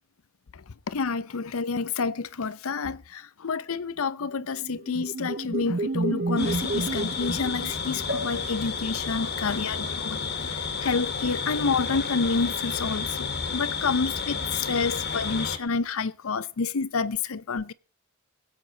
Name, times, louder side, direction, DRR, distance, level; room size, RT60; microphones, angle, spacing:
voice 1, 0.5-17.7, left 4 dB, 75° left, 0.7 m, -29 dB
sound 1, 4.3-8.3, right 3 dB, 45° right, 0.6 m, -31 dB
sound 2, 6.4-15.6, left 5 dB, 50° left, 1.7 m, -31 dB
sound 3, 8.1-11.7 12.3-12.4 12.6-12.7, left 1 dB, 60° right, 3.3 m, -41 dB
21.5 x 8.2 x 3.9 m
head